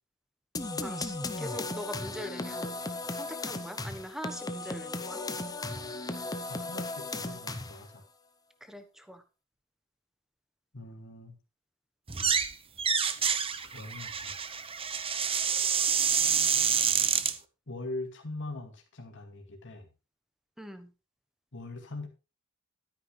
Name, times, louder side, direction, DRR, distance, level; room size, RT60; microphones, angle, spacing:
sound 1, 0.5-7.9, left 2 dB, 15° left, 0.8 m, -36 dB
voice 1, 0.8-2.8 3.1-5.2 8.6-9.2 20.6-20.9, equal, ahead, 8 dB, 1.1 m, -42 dB
voice 2, 6.5-8.1 10.7-11.4 13.7-14.3 17.7-19.9 21.5-22.1, left 2 dB, 60° left, 2 dB, 2.3 m, -41 dB
sound 2, 12.1-12.5 12.8-17.3, right 7 dB, 25° right, 0.8 m, -27 dB
12.5 x 9.3 x 3.3 m, 0.29 s
head